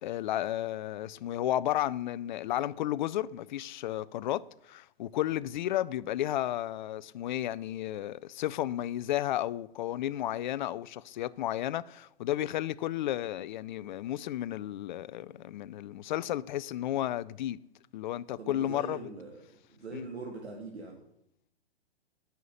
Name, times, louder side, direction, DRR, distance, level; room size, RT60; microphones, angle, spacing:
voice 1, 0.0-17.6 17.9-19.0 19.9-20.1, left 13 dB, 50° left, 0.5 m, -33 dB
voice 2, 18.4-21.0, right 3 dB, 90° right, 1.8 m, -42 dB
9.3 x 5.8 x 7.8 m
hypercardioid pair, 125°, 32 cm